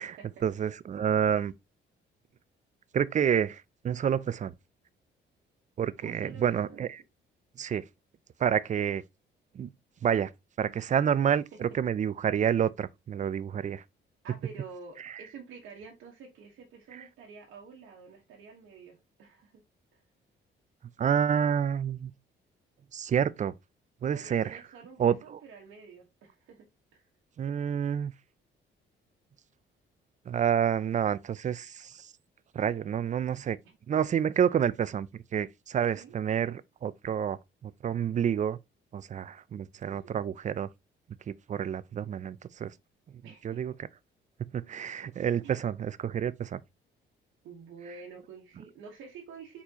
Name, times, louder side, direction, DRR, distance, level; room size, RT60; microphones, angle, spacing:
voice 1, 0.0-1.5 2.9-4.5 5.8-6.9 7.6-7.9 8.4-9.0 9.5-9.7 10.0-10.3 10.6-13.8 21.0-22.1 22.9-23.5 24.0-24.6 25.0-25.2 27.4-28.1 30.3-32.1 32.5-33.6 33.9-35.1 35.3-38.6 38.9-40.7 41.3-42.7 43.4-43.7 44.4-46.6, right 8 dB, 40° right, 0.4 m, -29 dB
voice 2, 6.0-6.9 11.3-11.6 14.2-19.6 19.9-20.0 24.1-26.7 26.9-27.0 36.0-36.1 39.8-40.2 43.2-43.6 45.4-45.5 47.4-49.6, right 5 dB, 80° right, 1.2 m, -48 dB
4.4 x 4.2 x 2.9 m
cardioid pair, 90°, 20 cm